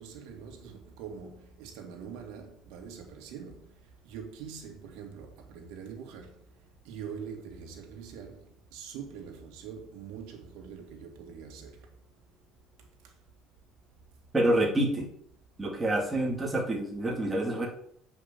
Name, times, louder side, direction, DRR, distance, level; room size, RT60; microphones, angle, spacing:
voice 1, 0.0-3.7 4.0-6.4 6.8-11.9 13.0-13.1, right 7 dB, 85° right, 2.4 m, -44 dB
voice 2, 14.3-15.1 15.6-17.7, right 1 dB, 10° right, 2.3 m, -27 dB
8.0 x 5.7 x 7.1 m
cardioid pair, 170°, 0 cm